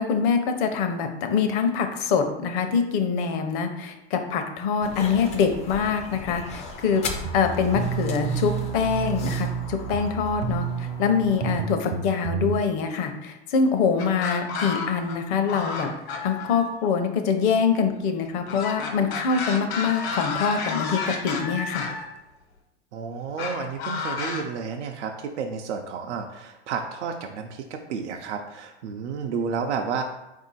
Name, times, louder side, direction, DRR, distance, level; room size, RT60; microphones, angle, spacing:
voice 1, 0.0-7.0 7.3-15.9 16.2-21.9, left 6 dB, 50° left, 6 dB, 0.7 m, -24 dB
sound 1, 4.8-11.7, left 4 dB, 20° left, 0.4 m, -38 dB
sound 2, 7.2-12.6, right 6 dB, 40° right, 0.4 m, -30 dB
sound 3, 14.0-15.2 15.5-16.7 18.5-22.1 23.4-24.4, left 5 dB, 65° left, 1.1 m, -31 dB
voice 2, 22.9-30.0, right 6 dB, 85° right, 3 dB, 0.6 m, -31 dB
4.3 x 2.7 x 4.0 m, 0.95 s
supercardioid pair, 135°, 34 cm